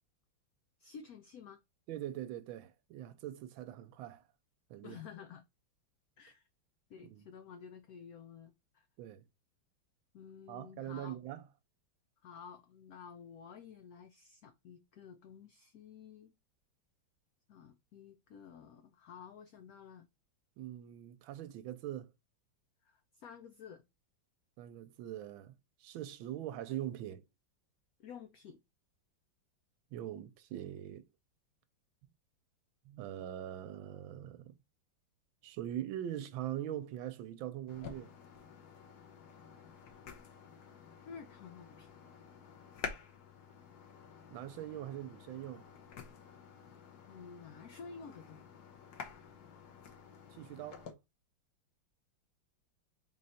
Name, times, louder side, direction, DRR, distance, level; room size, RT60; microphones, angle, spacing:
voice 1, 0.8-1.6 4.8-5.4 6.2-6.4 6.9-8.9 10.1-11.2 12.2-16.3 17.5-20.1 22.8-23.8 28.0-28.6 41.1-41.9 47.1-48.5, left 6 dB, 85° left, 0.8 m, -52 dB
voice 2, 1.9-4.2 4.7-5.0 7.0-7.2 9.0-9.2 10.5-11.4 20.6-22.1 24.6-27.2 29.9-31.1 32.9-34.5 35.4-38.1 44.3-45.7 50.3-50.9, right 12 dB, 90° right, 1.4 m, -42 dB
sound 1, 37.7-50.9, left 6 dB, 60° left, 1.2 m, -50 dB
4.0 x 3.1 x 4.1 m
omnidirectional pair, 2.1 m